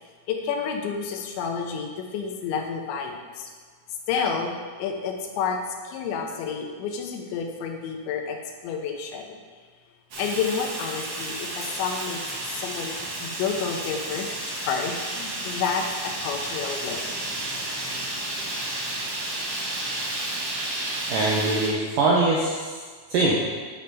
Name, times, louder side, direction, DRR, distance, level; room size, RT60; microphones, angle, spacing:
voice 1, 0.3-3.5 4.1-8.4 8.6-9.4 10.2-12.2 12.5-17.2, left 6 dB, 85° left, 3 dB, 3.2 m, -30 dB
Fire, 10.1-21.7, right 1 dB, 55° right, 1.6 m, -32 dB
voice 2, 21.1-22.8 23.1-23.3, right 2 dB, 75° right, -4 dB, 1.9 m, -22 dB
9.0 x 5.3 x 5.6 m, 1.5 s
omnidirectional pair, 5.1 m